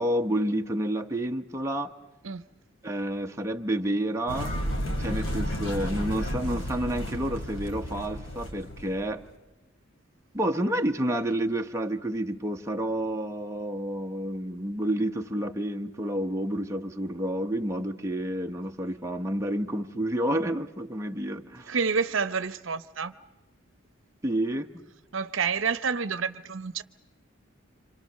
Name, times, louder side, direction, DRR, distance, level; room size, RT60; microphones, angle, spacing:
voice 1, 0.0-1.9 2.8-4.5 5.0-9.2 10.3-21.7 24.2-24.8, right 1 dB, 15° right, 3 dB, 0.9 m, -29 dB
sound 1, 4.3-9.2, equal, 65° left, 3.7 m, -32 dB
voice 2, 21.7-23.1 25.1-26.8, right 5 dB, 70° right, 13 dB, 0.8 m, -28 dB
27.0 x 26.5 x 6.6 m, 1.0 s
head